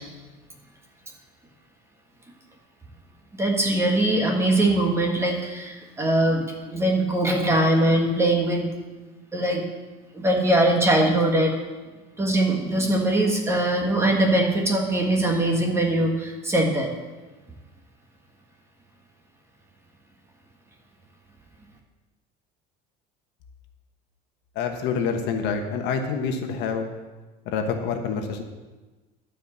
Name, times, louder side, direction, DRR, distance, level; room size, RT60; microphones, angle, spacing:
voice 1, 3.3-8.7 9.3-9.6 10.2-11.5 12.2-16.9, right 1 dB, 15° right, 1 dB, 1.6 m, -22 dB
voice 2, 24.5-26.9 27.4-28.4, left 5 dB, 65° left, 5 dB, 1.2 m, -27 dB
12.0 x 5.0 x 7.2 m, 1.2 s
cardioid pair, 145°, 19 cm